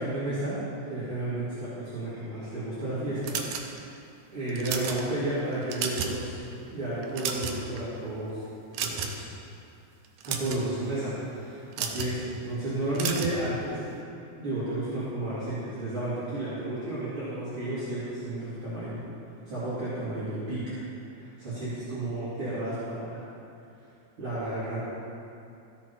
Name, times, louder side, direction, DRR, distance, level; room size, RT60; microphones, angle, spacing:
voice 1, 0.0-3.7 4.3-6.4 6.7-8.4 8.8-9.2 10.2-13.8 14.4-19.0 19.4-20.8 21.1-23.3 24.2-24.8, right 1 dB, 45° right, -13 dB, 3.4 m, -32 dB
sound 1, 3.2-4.0 4.5-5.0 5.5-6.2 6.5-6.7 7.0-7.8 8.7-9.3 10.0-10.6 11.7-12.1 12.9-13.4, right 7 dB, 80° right, 2.1 m, -32 dB
14.0 x 7.7 x 4.3 m, 2.6 s
omnidirectional pair, 3.4 m